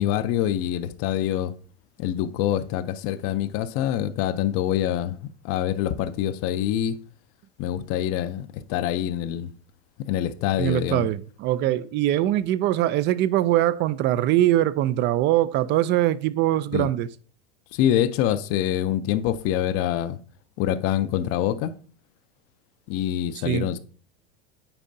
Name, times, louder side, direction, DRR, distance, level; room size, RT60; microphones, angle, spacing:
voice 1, 0.0-1.5 2.0-5.2 5.4-6.9 7.6-9.5 10.1-11.0 16.7-16.9 17.7-20.2 20.6-21.7 22.9-23.8, left 11 dB, 50° left, 0.6 m, -25 dB
voice 2, 10.6-17.1 23.4-23.7, right 13 dB, 35° right, 0.4 m, -22 dB
8.7 x 4.4 x 2.6 m
hypercardioid pair, 95°, 31 cm